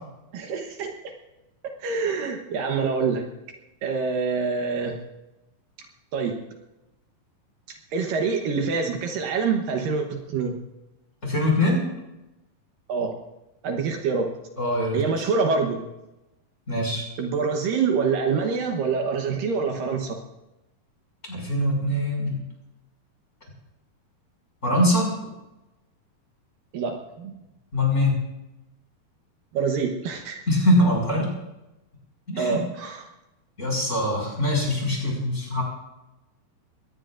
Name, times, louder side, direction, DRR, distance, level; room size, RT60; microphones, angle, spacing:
voice 1, 0.3-0.9 1.8-3.3 3.8-5.0 6.1-6.4 7.7-10.6 12.9-13.1 13.6-14.3 14.9-15.9 17.2-20.2 26.7-27.3 29.5-30.4 32.4-33.1, right 5 dB, 75° right, 3 dB, 2.7 m, -26 dB
voice 2, 11.2-11.8 14.6-15.0 16.7-17.0 21.3-22.4 24.6-25.1 27.7-28.1 30.5-31.3 32.3-32.6 33.6-35.6, left 1 dB, 20° left, -2 dB, 6.2 m, -22 dB
22.5 x 18.0 x 2.5 m, 0.97 s
omnidirectional pair, 4.2 m